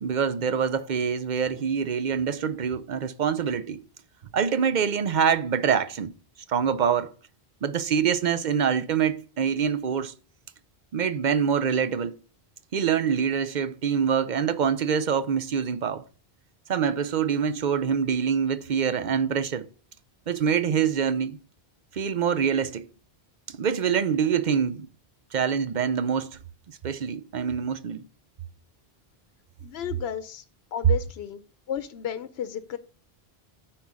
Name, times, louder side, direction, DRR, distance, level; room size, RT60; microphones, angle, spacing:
voice 1, 0.0-3.8 4.3-6.1 6.5-7.1 7.6-10.1 10.9-12.1 12.7-16.0 16.7-19.7 20.3-21.4 21.9-22.9 23.5-24.9 25.3-26.4 26.8-28.0, right 7 dB, 55° right, 0.7 m, -25 dB
voice 2, 29.6-30.4 30.7-31.4 31.7-32.8, left 9 dB, 90° left, 0.9 m, -33 dB
9.3 x 4.5 x 4.8 m
omnidirectional pair, 1.0 m